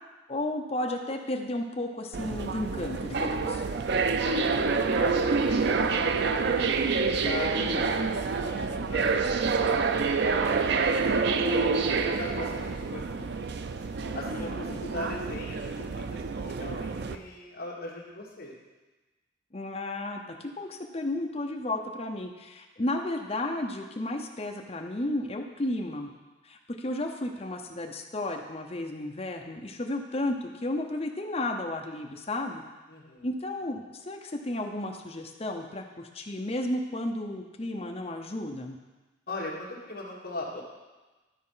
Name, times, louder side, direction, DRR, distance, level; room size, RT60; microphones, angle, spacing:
voice 1, 0.3-3.6 7.6-7.9 14.3-14.8 19.5-26.1 26.4-32.6 33.2-38.8, left 1 dB, 30° left, 2 dB, 0.7 m, -33 dB
sound 1, 2.1-17.2, right 4 dB, 55° right, 0.4 m, -27 dB
voice 2, 4.2-6.7 7.2-10.9 11.3-13.5 14.1-18.5 32.9-33.3 39.3-40.6, left 2 dB, 45° left, -3 dB, 1.7 m, -39 dB
12.0 x 4.3 x 5.6 m, 1.2 s
head